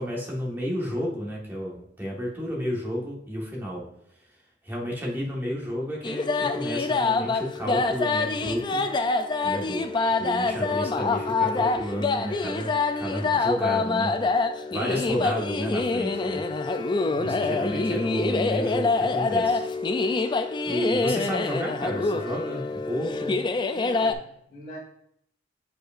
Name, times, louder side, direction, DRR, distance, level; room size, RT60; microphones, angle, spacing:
voice 1, 0.0-3.8 4.6-8.8 9.4-9.9 10.2-14.1 14.7-16.9 17.2-19.7 20.0-20.2 20.6-23.3, equal, 10° right, -4 dB, 1.5 m, -31 dB
sound 1, 6.0-24.1, left 3 dB, 25° left, 0.3 m, -26 dB
voice 2, 16.9-17.6 23.7-24.8, right 1 dB, 40° left, -10 dB, 2.1 m, -43 dB
7.8 x 5.0 x 2.5 m, 0.71 s
head